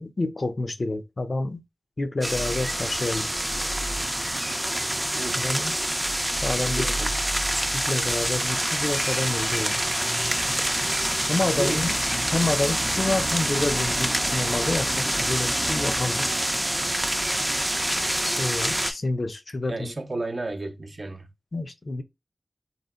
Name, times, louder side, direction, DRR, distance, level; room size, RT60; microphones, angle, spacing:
voice 1, 0.0-1.6 2.0-3.5 5.4-5.8 6.2-7.0 7.7-9.8 11.3-12.0 12.3-16.3 18.4-19.9 21.5-22.0, left 2 dB, 60° left, 0.5 m, -28 dB
sound 1, 2.2-18.9, right 1 dB, 15° right, 0.4 m, -26 dB
voice 2, 5.1-5.7 6.6-7.2 11.3-11.8 19.6-21.3, right 2 dB, 55° right, 0.6 m, -33 dB
3.8 x 2.1 x 2.3 m
cardioid pair, 45°, 0 cm